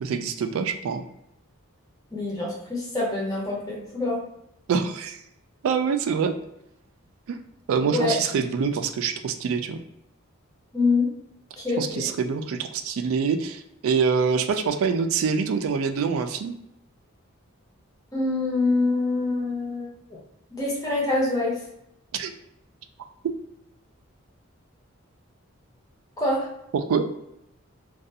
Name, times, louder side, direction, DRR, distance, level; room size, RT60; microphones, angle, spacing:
voice 1, 0.0-1.0 4.7-5.2 5.6-6.3 7.3-7.4 7.7-9.8 11.8-16.5 22.1-22.3 26.7-27.1, right 6 dB, 80° right, 9 dB, 0.3 m, -25 dB
voice 2, 2.1-4.2 7.9-8.2 10.7-11.0 11.6-12.1 18.1-20.2 20.5-21.5 26.2-26.5, left 2 dB, 15° left, -5 dB, 0.7 m, -25 dB
2.4 x 2.3 x 2.6 m, 0.81 s
head